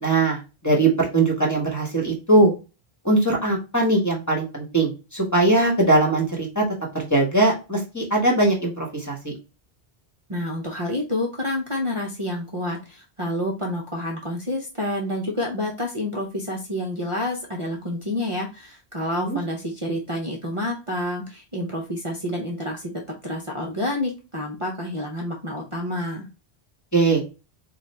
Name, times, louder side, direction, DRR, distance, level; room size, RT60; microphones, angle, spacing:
voice 1, 0.0-2.5 3.0-6.6 6.9-9.3 19.2-19.4 26.9-27.2, right 2 dB, 15° left, -2 dB, 1.4 m, -20 dB
voice 2, 10.3-22.9 23.2-26.3, left 1 dB, 35° right, -2 dB, 0.8 m, -28 dB
3.8 x 2.4 x 4.3 m, 0.30 s
omnidirectional pair, 1.1 m